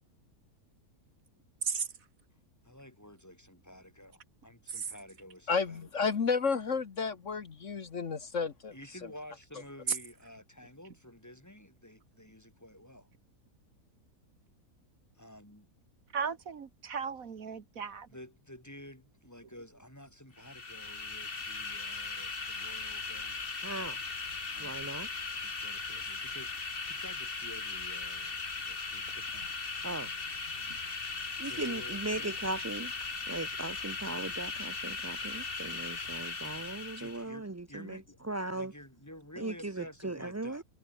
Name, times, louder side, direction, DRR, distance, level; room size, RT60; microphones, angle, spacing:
voice 1, 2.6-6.1 8.7-13.1 15.2-15.7 18.1-24.0 24.5-25.0 25.4-29.6 31.5-32.4 37.0-38.2 38.5-40.6, left 1 dB, 10° left, 3.5 m, -51 dB
voice 2, 5.5-8.8, left 5 dB, 50° left, 1.7 m, -31 dB
voice 3, 16.1-18.1 32.6-32.7, right 6 dB, 60° right, 1.8 m, -36 dB
sound 1, 20.4-37.2, left 4 dB, 35° left, 2.0 m, -38 dB
voice 4, 23.6-24.0 24.6-25.1 29.8-30.1 31.4-32.9 33.3-38.7 39.4-40.6, right 2 dB, 25° right, 0.3 m, -38 dB
omnidirectional pair, 1.6 m